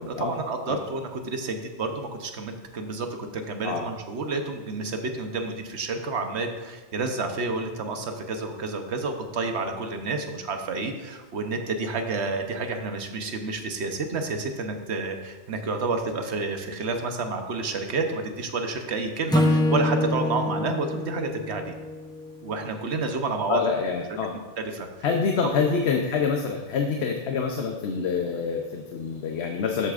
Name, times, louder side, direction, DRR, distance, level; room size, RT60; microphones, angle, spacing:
voice 1, 0.1-3.1 3.3-21.7 22.4-23.6 24.6-24.9, right 3 dB, 65° right, 5 dB, 1.1 m, -30 dB
Acoustic guitar / Strum, 19.3-22.6, left 2 dB, 5° left, 0.6 m, -25 dB
voice 2, 23.5-24.3 25.0-29.9, left 5 dB, 65° left, 3 dB, 0.9 m, -26 dB
13.0 x 8.2 x 2.5 m, 1.3 s
omnidirectional pair, 1.2 m